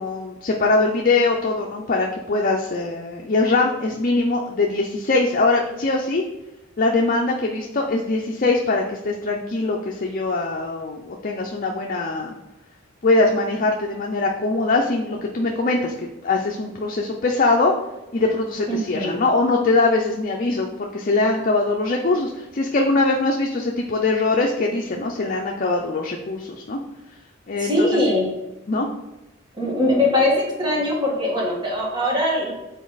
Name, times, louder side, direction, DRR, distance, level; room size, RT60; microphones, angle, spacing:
voice 1, 0.0-6.2 6.8-12.3 13.0-15.9 16.2-17.7 18.1-26.8 27.5-28.0 28.7-28.9, left 3 dB, 45° left, 1 dB, 0.6 m, -22 dB
voice 2, 18.7-19.2 27.6-28.4 29.6-32.5, left 1 dB, 25° right, -3 dB, 1.8 m, -21 dB
7.2 x 4.2 x 4.0 m, 0.99 s
head